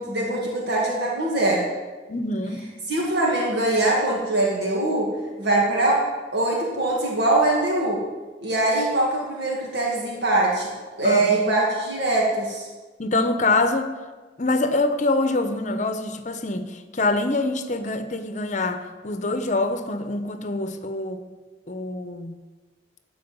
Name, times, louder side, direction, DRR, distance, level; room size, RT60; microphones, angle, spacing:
voice 1, 0.0-1.7 2.9-5.1 5.4-6.0 6.3-8.0 8.4-10.7 11.0-12.7, right 2 dB, 65° right, 2.1 m, -22 dB
voice 2, 2.1-2.6 11.0-11.4 13.0-13.9 14.4-21.3 21.7-22.4, left 2 dB, 40° left, 0.9 m, -25 dB
13.5 x 4.9 x 8.7 m
head